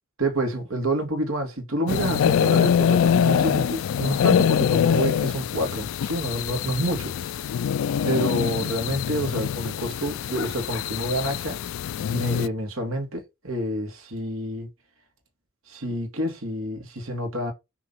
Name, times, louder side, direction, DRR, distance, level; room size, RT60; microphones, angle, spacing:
voice 1, 0.2-7.3 8.0-11.6 12.0-14.7 15.7-17.5, right 1 dB, 85° right, 2.1 m, -28 dB
sound 1, 1.9-12.5, left 8 dB, 75° left, 0.3 m, -24 dB
5.9 x 3.0 x 5.6 m
head